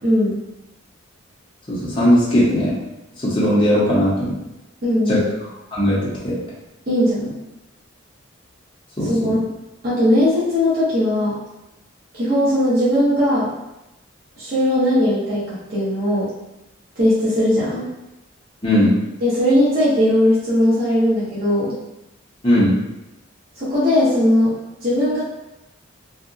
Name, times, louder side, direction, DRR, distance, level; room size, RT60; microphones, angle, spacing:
voice 1, 0.0-0.4 4.8-5.3 6.9-7.4 9.0-9.4 9.8-11.4 12.1-13.5 14.4-16.3 17.0-17.9 19.2-21.7 23.6-24.5 24.8-25.2, left 1 dB, 45° right, -10 dB, 0.7 m, -18 dB
voice 2, 1.7-2.7 3.2-4.3 5.1-5.2 5.7-6.0 6.2-6.3 9.0-9.3 18.6-18.9 22.4-22.7, equal, 25° left, -8 dB, 0.6 m, -17 dB
2.7 x 2.1 x 2.4 m, 0.94 s
head